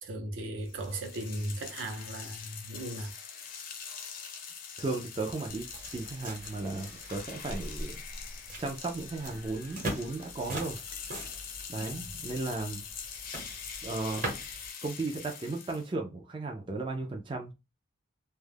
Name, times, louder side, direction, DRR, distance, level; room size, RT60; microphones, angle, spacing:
voice 1, 0.0-3.1 11.9-12.1, right 1 dB, 70° right, 0.6 m, -37 dB
sound 1, 0.7-15.9, left 7 dB, 45° left, 0.5 m, -44 dB
voice 2, 4.8-5.7 5.9-8.0 8.6-10.8 11.7-12.8 13.8-14.3 14.8-17.5, right 3 dB, 25° right, 0.3 m, -35 dB
sound 2, 5.5-14.7, right 1 dB, 40° right, 0.9 m, -42 dB
2.2 x 2.0 x 3.2 m
head